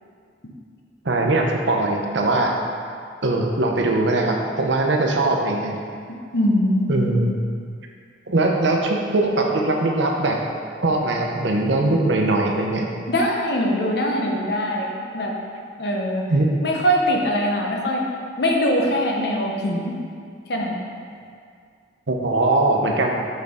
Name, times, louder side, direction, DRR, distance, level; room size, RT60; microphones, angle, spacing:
voice 1, 1.0-2.5 3.2-5.8 6.9-7.3 8.3-10.4 10.8-12.9 16.3-16.5 22.1-23.1, right 2 dB, 75° right, 1 dB, 0.8 m, -21 dB
voice 2, 6.1-7.4 13.1-15.3 15.8-16.2 16.6-18.0 18.4-19.9 20.5-20.8, equal, 55° left, 0 dB, 0.9 m, -22 dB
6.5 x 6.3 x 3.6 m, 2.2 s
head